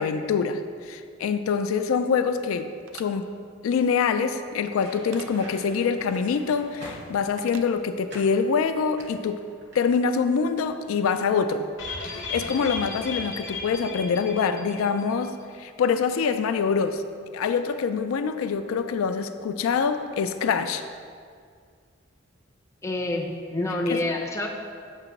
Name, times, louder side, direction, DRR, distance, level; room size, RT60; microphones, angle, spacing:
voice 1, 0.0-3.3 3.6-9.4 9.7-11.7 12.0-17.0 17.3-20.8 23.9-24.0, left 5 dB, 80° left, 9 dB, 0.3 m, -25 dB
sound 1, 2.8-3.1 5.1-5.3 7.4-7.7, right 6 dB, 70° right, 0.4 m, -43 dB
sound 2, 4.6-7.6 8.1-8.4 8.9-10.2 10.4-10.7, right 1 dB, 55° right, 1.1 m, -45 dB
sound 3, 11.8-15.2 15.5-15.6 15.9-16.0, left 3 dB, 60° left, 0.9 m, -35 dB
voice 2, 22.8-24.5, left 2 dB, 15° left, 0 dB, 0.5 m, -27 dB
7.4 x 2.9 x 5.7 m, 2.1 s
head